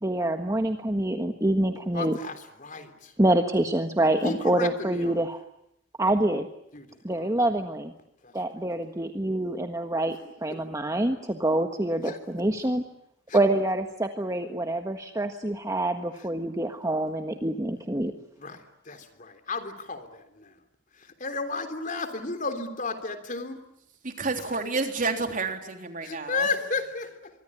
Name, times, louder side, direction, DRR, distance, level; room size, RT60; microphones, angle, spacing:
voice 1, 0.0-2.2 3.2-5.4 6.0-6.5 7.0-7.9 8.3-12.8 13.3-18.1, right 1 dB, 20° right, 5 dB, 1.5 m, -26 dB
voice 2, 1.9-3.1 4.2-5.2 6.7-6.9 7.2-7.4 8.2-8.3 10.2-10.6 12.0-12.2 13.3-13.4 18.4-20.5 21.0-23.6 26.0-27.3, left 3 dB, 45° left, 9 dB, 3.4 m, -33 dB
voice 3, 24.0-26.5, right 3 dB, 45° right, 5 dB, 3.5 m, -30 dB
24.5 x 24.5 x 9.8 m, 0.77 s
head